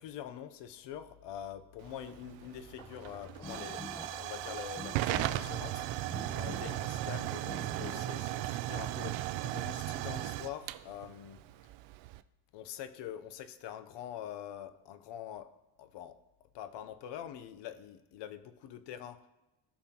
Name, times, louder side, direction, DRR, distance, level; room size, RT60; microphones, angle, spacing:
voice 1, 0.0-3.8 4.1-6.0 6.3-11.4 12.5-15.5 15.8-16.2 16.5-19.2, left 10 dB, 65° left, 10 dB, 0.8 m, -45 dB
Hiss / Fire / Tick, 1.8-12.2, right 15 dB, 70° right, 0.5 m, -37 dB
sound 1, 2.8-8.0, left 2 dB, 10° left, 0.8 m, -47 dB
16.5 x 5.6 x 2.9 m, 1.0 s
cardioid pair, 150°, 45 cm